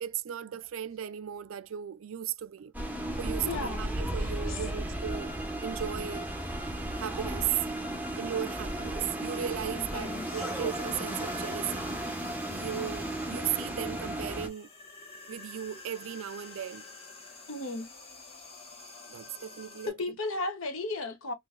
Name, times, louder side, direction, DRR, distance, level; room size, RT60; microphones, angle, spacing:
voice 1, 0.0-2.7 3.2-5.4 5.6-6.3 7.0-7.6 8.1-12.0 12.5-14.7 15.3-16.9 19.1-20.0, right 10 dB, 65° right, 0.3 m, -36 dB
sound 1, 2.7-14.5, right 1 dB, 10° right, 0.6 m, -34 dB
voice 2, 3.4-3.9 4.2-4.6 9.8-10.4 17.5-17.9 19.9-21.3, left 3 dB, 65° left, 0.9 m, -35 dB
sound 2, 9.2-19.9, left 3 dB, 30° left, 1.3 m, -49 dB
3.8 x 2.7 x 2.4 m
head